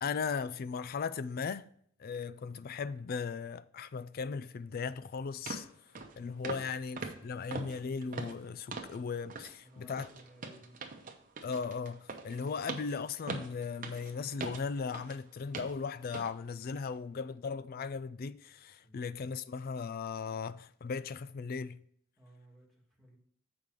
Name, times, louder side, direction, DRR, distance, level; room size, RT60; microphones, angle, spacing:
voice 1, 0.0-1.7 2.0-5.7 6.2-10.1 11.4-21.8, left 5 dB, 45° left, 0.3 m, -37 dB
sound 1, 4.8-4.9 5.5-5.7 6.0-6.2 6.4-6.7 7.0-9.0 9.3-9.6 9.9-15.2 15.5-15.8 16.1-16.3 16.8-16.9, right 3 dB, 40° right, 0.8 m, -42 dB
voice 2, 9.6-10.8 18.8-19.1 22.2-23.2, right 1 dB, ahead, 1.8 m, -59 dB
7.3 x 5.2 x 4.7 m
head